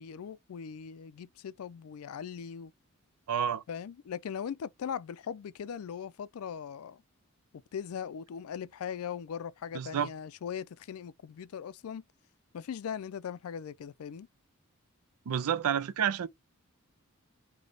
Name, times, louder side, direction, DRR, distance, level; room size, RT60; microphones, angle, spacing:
voice 1, 0.0-2.7 3.7-7.0 7.7-12.0 12.5-14.3, left 7 dB, 80° left, 0.4 m, -39 dB
voice 2, 3.3-3.6 9.7-10.1 15.3-16.3, right 8 dB, 85° right, 0.4 m, -29 dB
4.9 x 2.2 x 3.8 m
head